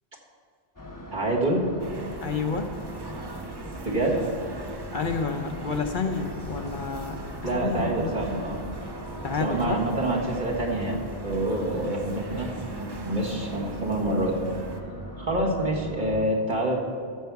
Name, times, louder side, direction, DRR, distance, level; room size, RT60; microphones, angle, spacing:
sound 1, 0.8-16.3, left 1 dB, 20° left, 1.1 m, -40 dB
voice 1, 1.1-1.7 3.8-4.2 7.4-8.6 9.3-14.4 15.2-16.8, right 1 dB, 50° right, -2 dB, 1.7 m, -27 dB
sound 2, 1.8-14.8, right 2 dB, 30° right, 0.6 m, -40 dB
voice 2, 2.2-2.7 4.9-7.2 7.5-8.1 9.2-9.8, left 5 dB, 55° left, 4 dB, 0.9 m, -29 dB
14.0 x 7.1 x 4.7 m, 2.3 s
omnidirectional pair, 1.1 m